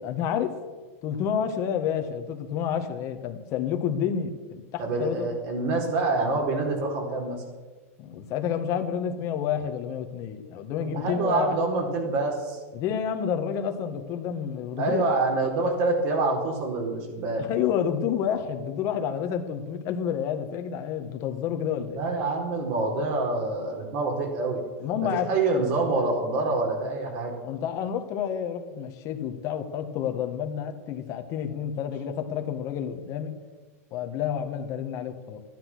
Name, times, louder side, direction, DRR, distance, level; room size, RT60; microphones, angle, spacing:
voice 1, 0.0-0.5 1.0-5.3 8.0-11.5 12.7-15.1 17.4-22.0 24.8-25.3 27.4-33.4 33.9-35.4, left 8 dB, 40° left, 7 dB, 1.6 m, -29 dB
voice 2, 4.8-7.4 10.8-12.6 14.8-17.4 21.9-24.6 25.0-27.3, right 3 dB, 50° right, 1 dB, 4.3 m, -26 dB
13.5 x 10.5 x 6.3 m, 1.3 s
hypercardioid pair, 125°, 8 cm